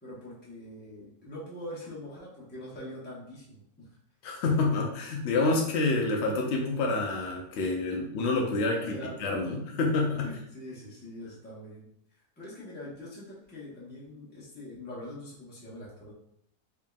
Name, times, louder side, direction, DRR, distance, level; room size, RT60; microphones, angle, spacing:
voice 1, 0.0-3.9 7.6-7.7 8.7-9.5 10.2-11.9 12.4-16.1, left 1 dB, 10° left, -7 dB, 0.9 m, -43 dB
voice 2, 4.2-10.3, left 3 dB, 65° left, 1 dB, 0.7 m, -28 dB
3.6 x 3.4 x 2.3 m, 0.71 s
omnidirectional pair, 1.6 m